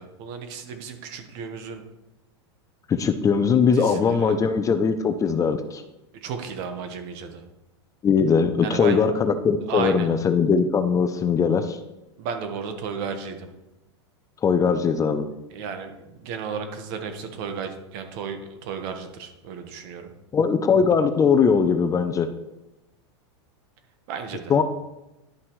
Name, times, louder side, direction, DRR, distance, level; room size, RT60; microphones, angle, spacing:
voice 1, 0.0-1.8 3.7-4.4 6.1-7.4 8.6-9.0 9.7-10.1 12.2-13.5 15.5-20.1 24.1-24.5, right 6 dB, 55° right, 6 dB, 1.3 m, -33 dB
voice 2, 2.9-5.8 8.0-11.8 14.4-15.3 20.3-22.3 24.5-24.6, left 6 dB, 20° left, 9 dB, 0.5 m, -20 dB
11.0 x 5.7 x 3.2 m, 0.95 s
hypercardioid pair, 115°, 15 cm